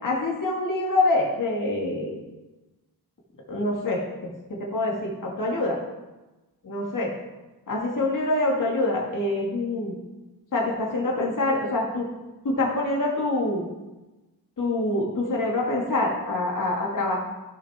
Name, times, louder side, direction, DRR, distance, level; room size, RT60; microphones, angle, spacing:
voice 1, 0.0-2.2 3.5-5.8 6.6-7.1 7.7-10.0 10.5-12.1 12.4-13.7 14.6-17.2, left 2 dB, 55° left, -3 dB, 2.2 m, -25 dB
14.5 x 6.6 x 3.7 m, 1.1 s
wide cardioid pair, 100°, 37 cm